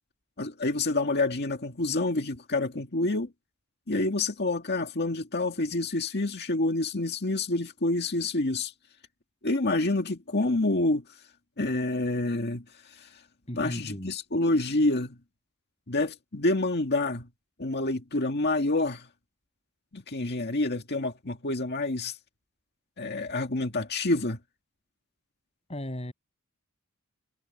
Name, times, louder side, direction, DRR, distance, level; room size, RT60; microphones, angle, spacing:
voice 1, 0.4-3.3 3.9-8.7 9.4-11.0 11.6-12.6 13.0-13.1 13.6-15.2 15.9-17.3 17.6-19.1 19.9-22.2 23.0-24.4, left 2 dB, 50° left, 2.0 m, -27 dB
voice 2, 13.5-14.1 25.7-26.1, equal, 30° left, 7.8 m, -35 dB
head